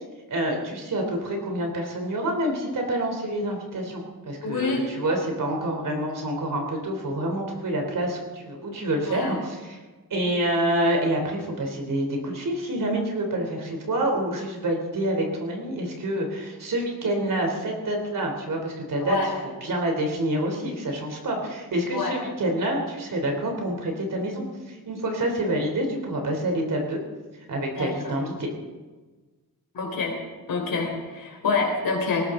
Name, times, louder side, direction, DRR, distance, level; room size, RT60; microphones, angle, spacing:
voice 1, 0.3-9.8 10.1-19.2 19.4-27.0 27.5-28.5, right 1 dB, 55° right, 2 dB, 3.6 m, -27 dB
voice 2, 4.4-4.8 9.1-9.4 19.0-19.3 21.9-22.2 27.8-28.2 29.7-30.2 30.5-32.3, left 4 dB, 65° left, 1 dB, 4.3 m, -27 dB
19.5 x 19.5 x 3.9 m, 1.3 s
wide cardioid pair, 175°, 37 cm